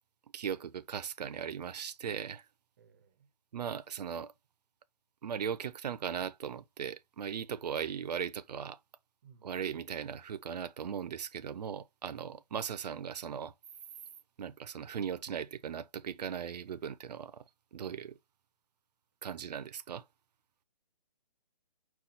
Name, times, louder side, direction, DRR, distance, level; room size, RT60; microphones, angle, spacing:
voice 1, 0.3-2.4 3.5-4.3 5.2-8.8 9.4-13.5 14.4-17.4 17.7-18.1 19.2-20.0, right 8 dB, 75° right, 0.5 m, -38 dB
voice 2, 2.8-3.3 7.4-7.8 9.2-9.6, right 6 dB, 25° right, 0.5 m, -62 dB
5.6 x 2.3 x 4.0 m
hypercardioid pair, 165°, 21 cm